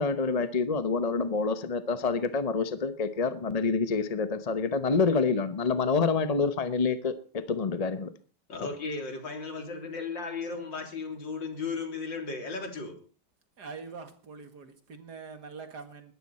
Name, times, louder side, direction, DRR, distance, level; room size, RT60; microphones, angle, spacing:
voice 1, 0.0-8.1, left 4 dB, 40° left, 11 dB, 0.5 m, -27 dB
voice 2, 8.5-13.0, left 4 dB, 70° left, 4 dB, 4.0 m, -35 dB
voice 3, 13.6-16.1, right 5 dB, 60° right, 8 dB, 2.4 m, -44 dB
20.5 x 14.0 x 4.2 m, 0.39 s
omnidirectional pair, 2.0 m